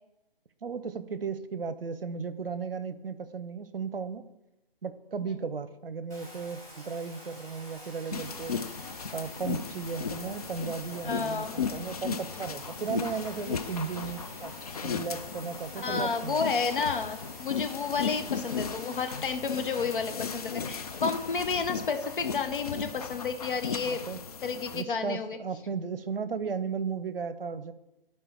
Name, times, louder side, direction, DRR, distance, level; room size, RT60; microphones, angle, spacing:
voice 1, 0.6-4.2 4.8-8.6 9.1-14.5 14.8-16.4 23.8-24.2 24.7-27.7, right 5 dB, 70° right, 13 dB, 0.7 m, -35 dB
Bathtub (filling or washing), 6.1-22.3, equal, 10° left, 3.1 m, -48 dB
sound 1, 8.1-24.8, left 6 dB, 40° left, 0.4 m, -36 dB
voice 2, 11.0-11.5 15.8-24.0 24.4-25.4, left 5 dB, 60° left, 6 dB, 1.0 m, -31 dB
11.5 x 4.6 x 3.5 m, 0.93 s
figure-of-eight pair, 140°, 30 cm